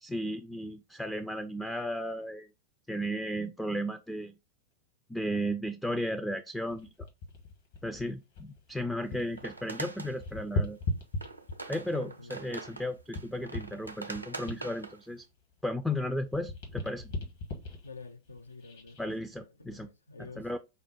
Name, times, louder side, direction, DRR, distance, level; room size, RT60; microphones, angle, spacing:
voice 1, 0.0-2.5 2.9-4.3 5.1-6.9 7.8-10.8 11.7-15.2 15.6-17.1 19.0-19.9 20.2-20.6, equal, 5° left, 0.3 m, -34 dB
sound 1, 6.7-9.4 9.7-11.8 12.4-15.9 16.2-19.0 19.6-19.8, left 2 dB, 55° left, 1.5 m, -38 dB
sound 2, 9.0-10.2 10.8-10.9 11.1-15.2, right 3 dB, 85° right, 0.5 m, -43 dB
voice 2, 11.9-12.4 17.8-20.5, left 4 dB, 75° left, 0.4 m, -49 dB
5.2 x 2.1 x 4.3 m
figure-of-eight pair, 90°, 0 cm